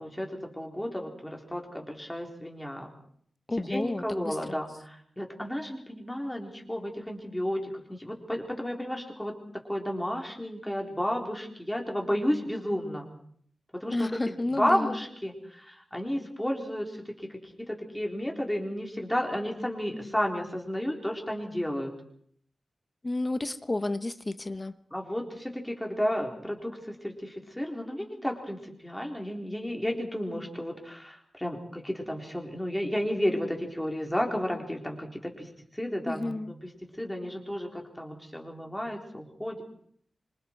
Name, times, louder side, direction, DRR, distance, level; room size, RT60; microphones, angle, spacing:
voice 1, 0.0-2.9 3.6-13.1 13.7-21.9 24.9-36.7 37.0-39.6, equal, 5° left, 1 dB, 4.0 m, -32 dB
voice 2, 3.5-4.6 13.9-15.0 23.0-24.7 36.1-36.5, left 2 dB, 20° left, 12 dB, 0.9 m, -31 dB
26.0 x 25.5 x 4.7 m, 0.63 s
wide cardioid pair, 135°, 0 cm